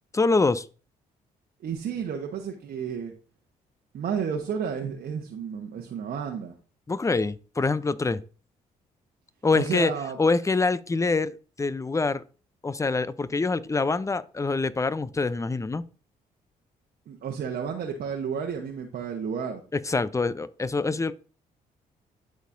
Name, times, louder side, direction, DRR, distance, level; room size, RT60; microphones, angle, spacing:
voice 1, 0.1-0.7 6.9-8.2 9.4-9.9 10.2-12.2 12.6-15.8 19.7-21.1, left 3 dB, 15° left, 0.6 m, -25 dB
voice 2, 1.6-3.1 3.9-6.6 9.5-10.2 17.1-19.6, right 7 dB, 60° right, 1.1 m, -31 dB
12.5 x 4.3 x 2.6 m
hypercardioid pair, 50°, 18 cm